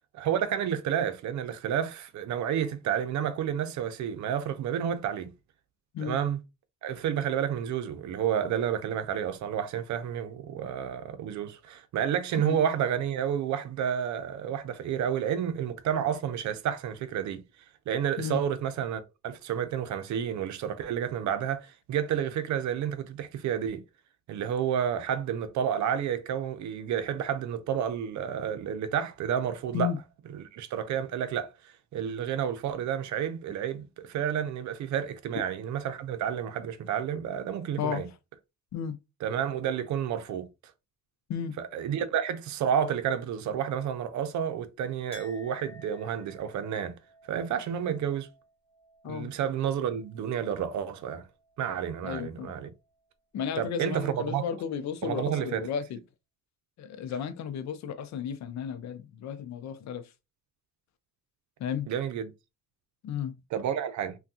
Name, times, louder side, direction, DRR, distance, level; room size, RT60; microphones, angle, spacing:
voice 1, 0.1-5.3 6.0-6.4 6.8-17.4 17.9-23.8 24.3-29.9 30.4-38.1 39.2-40.5 41.6-47.0 47.3-48.3 49.1-51.3 51.6-52.7 53.6-54.4 55.0-55.7 61.9-62.3 63.5-64.2, right 9 dB, 70° right, 0.6 m, -30 dB
Chink clink, 45.1-50.6 50.9-51.8, equal, 20° left, 1.9 m, -55 dB
voice 2, 52.0-52.5 53.3-56.0 56.8-60.1 61.6-61.9 63.0-63.3, left 8 dB, 65° left, 0.6 m, -33 dB
3.4 x 2.3 x 2.6 m
cardioid pair, 90°, 30 cm